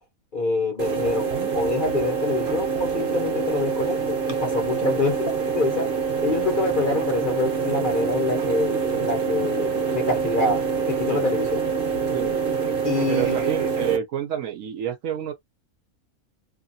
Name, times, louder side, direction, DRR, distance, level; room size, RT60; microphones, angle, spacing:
voice 1, 0.3-5.9 6.2-11.6 12.8-13.4, left 2 dB, 40° left, 0.8 m, -26 dB
sound 1, 0.8-14.0, right 5 dB, 45° right, 0.8 m, -25 dB
voice 2, 13.1-15.3, right 9 dB, 70° right, 1.0 m, -28 dB
2.6 x 2.6 x 2.6 m
omnidirectional pair, 1.6 m